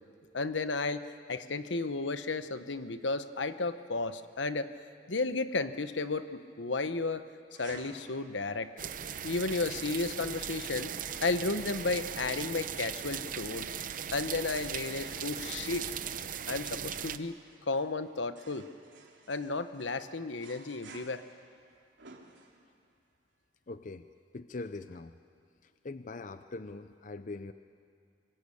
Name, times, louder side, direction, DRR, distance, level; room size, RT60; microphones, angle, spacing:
voice 1, 0.3-1.0 1.3-4.7 5.1-7.2 7.6-8.7 9.2-10.9 11.2-13.7 14.1-15.8 16.5-17.3 17.6-18.6 19.3-21.2, left 3 dB, 80° left, 11 dB, 1.0 m, -33 dB
sound 1, 7.5-22.9, right 3 dB, 80° right, 3.0 m, -56 dB
sound 2, 8.8-17.2, right 8 dB, 45° right, 0.7 m, -38 dB
voice 2, 9.0-9.3 23.7-24.1 24.3-25.1 25.6-27.5, left 3 dB, 45° left, 11 dB, 0.6 m, -42 dB
24.0 x 21.0 x 8.6 m, 2.2 s
head